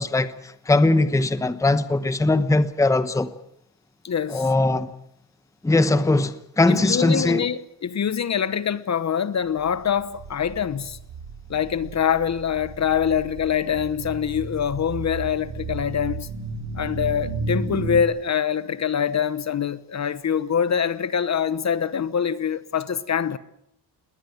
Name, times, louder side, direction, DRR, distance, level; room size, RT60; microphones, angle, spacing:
voice 1, 0.0-3.3 4.3-4.9 5.6-7.4, left 2 dB, 5° left, 0.9 m, -20 dB
voice 2, 4.0-4.5 6.7-11.0 11.5-16.3 16.7-23.4, left 8 dB, 40° left, 1.0 m, -24 dB
sound 1, 9.6-18.0, right 3 dB, 70° right, 3.9 m, -34 dB
21.0 x 18.5 x 9.2 m
cardioid pair, 145°, 42 cm